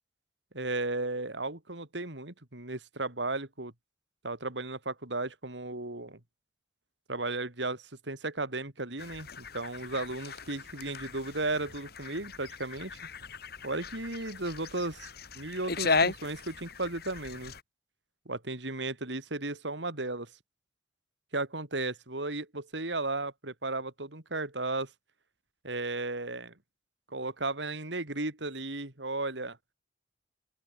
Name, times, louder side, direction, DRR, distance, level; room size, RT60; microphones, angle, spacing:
voice 1, 0.5-3.7 4.2-6.2 7.1-13.0 13.6-17.5 18.3-20.3 21.3-24.9 25.6-26.5 27.1-29.6, right 2 dB, 80° right, 4.1 m, -35 dB
sound 1, 9.0-17.6, left 4 dB, 60° left, 5.6 m, -36 dB
open air
head